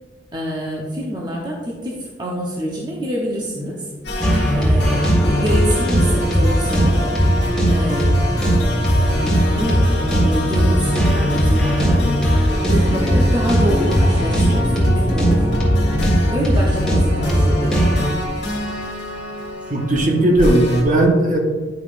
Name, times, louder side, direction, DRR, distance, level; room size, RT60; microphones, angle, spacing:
voice 1, 0.3-3.8 4.5-7.0 7.7-8.5 9.5-12.0 12.7-15.5 16.3-17.8, equal, 25° right, -4 dB, 0.8 m, -26 dB
sound 1, 4.0-20.8, left 1 dB, 70° left, 1.5 m, -27 dB
sound 2, 4.2-18.1, equal, 5° left, 1.6 m, -18 dB
voice 2, 19.7-21.4, right 1 dB, 40° right, 0 dB, 1.1 m, -16 dB
10.0 x 5.4 x 2.5 m, 1.4 s
head